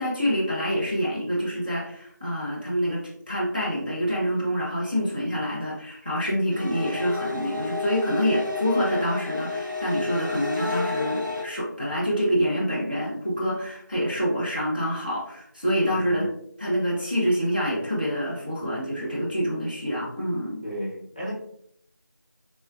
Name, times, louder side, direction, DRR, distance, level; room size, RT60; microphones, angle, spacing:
voice 1, 0.0-16.3 16.6-20.6, equal, 25° right, -5 dB, 0.5 m, -26 dB
sound 1, 6.5-11.4, left 3 dB, 85° right, 0.7 m, -31 dB
voice 2, 15.9-16.3 20.6-21.3, equal, 25° left, -6 dB, 0.6 m, -34 dB
3.1 x 2.1 x 2.4 m, 0.69 s
figure-of-eight pair, 175°, 10 cm